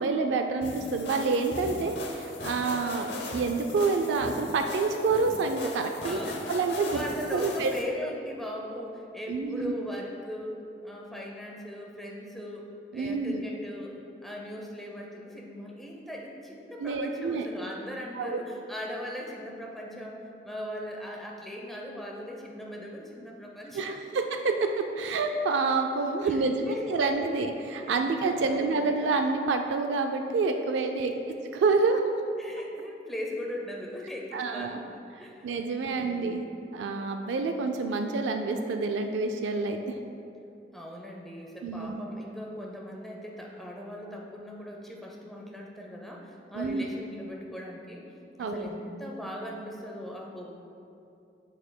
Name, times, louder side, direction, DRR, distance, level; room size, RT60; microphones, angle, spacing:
voice 1, 0.0-6.2 6.5-7.0 7.3-7.7 9.3-9.7 12.9-13.4 16.8-17.5 18.1-18.4 23.7-31.1 31.6-32.2 34.3-34.8 35.4-36.4 36.7-39.8 41.6-42.0 46.5-46.8 48.4-48.7, right 4 dB, 85° right, 5 dB, 0.3 m, -28 dB
sound 1, 0.6-7.8, left 2 dB, 75° left, 0.7 m, -39 dB
voice 2, 6.0-6.5 6.9-24.0 26.2-27.0 27.8-28.0 28.4-28.9 31.1-31.4 32.4-36.6 40.7-48.1 48.4-50.5, equal, ahead, -2 dB, 0.6 m, -39 dB
7.4 x 6.5 x 2.2 m, 2.7 s
head